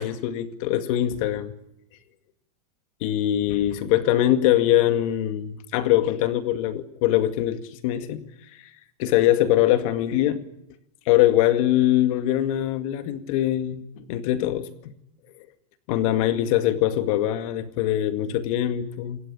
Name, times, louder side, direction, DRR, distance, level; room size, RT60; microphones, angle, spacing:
voice 1, 0.0-1.5 3.0-8.2 9.0-10.4 11.1-14.7 15.9-19.2, left 13 dB, 55° left, 9 dB, 2.1 m, -22 dB
27.0 x 21.0 x 8.9 m, 0.80 s
supercardioid pair, 145°, 21 cm